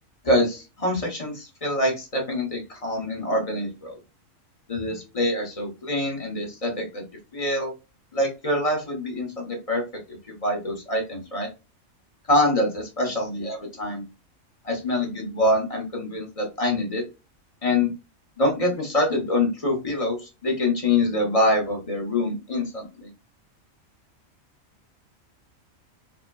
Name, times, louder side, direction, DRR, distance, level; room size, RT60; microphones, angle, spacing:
voice 1, 0.2-4.0 4.7-7.1 7.3-7.7 8.1-9.8 10.3-11.5 12.3-14.0 14.6-17.0 17.6-17.9 18.4-23.1, left 1 dB, 30° left, 1 dB, 0.9 m, -25 dB
3.3 x 2.1 x 2.2 m, 0.27 s
omnidirectional pair, 1.4 m